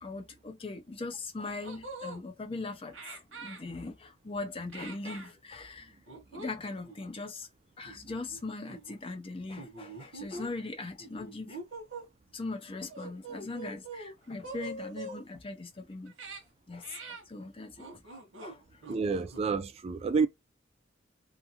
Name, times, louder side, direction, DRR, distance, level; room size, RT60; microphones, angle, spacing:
voice 1, 0.0-6.0 6.3-7.5 7.8-11.6 11.9-12.0 12.3-16.1 16.7-18.8, left 3 dB, 30° left, 0.5 m, -40 dB
sound 1, 1.1-1.2 1.6-2.2 2.9-3.6 4.7-5.3 6.1-6.5 6.8-7.0 7.8-8.4 8.7-8.9 9.6-10.5 11.0-12.1 12.9-14.1 14.4-15.2 16.0-16.4 16.8-17.2 17.8-18.6 18.8-19.4, right 2 dB, 80° right, 0.9 m, -43 dB
voice 2, 18.9-20.3, right 5 dB, 30° right, 0.3 m, -29 dB
2.6 x 2.4 x 2.7 m
head